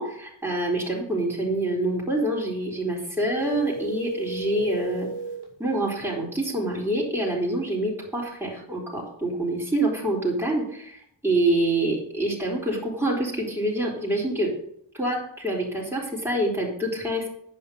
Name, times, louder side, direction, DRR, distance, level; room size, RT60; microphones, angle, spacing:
voice 1, 0.0-5.1 5.6-14.5 14.9-17.3, right 1 dB, 5° right, -4 dB, 4.3 m, -26 dB
sound 1, 3.4-5.5, right 4 dB, 55° left, 3.7 m, -34 dB
9.0 x 5.5 x 7.0 m, 0.67 s
cardioid pair, 50°, 47 cm